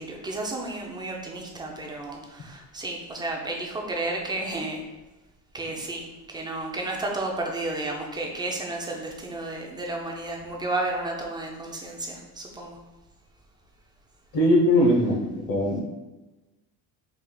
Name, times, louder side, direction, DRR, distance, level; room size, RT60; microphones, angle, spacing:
voice 1, 0.0-4.8 5.5-12.8, right 2 dB, 10° right, 0 dB, 0.4 m, -32 dB
voice 2, 14.3-15.8, left 1 dB, 45° left, 1 dB, 0.9 m, -21 dB
3.5 x 2.4 x 3.7 m, 1.1 s
cardioid pair, 125°, 45 cm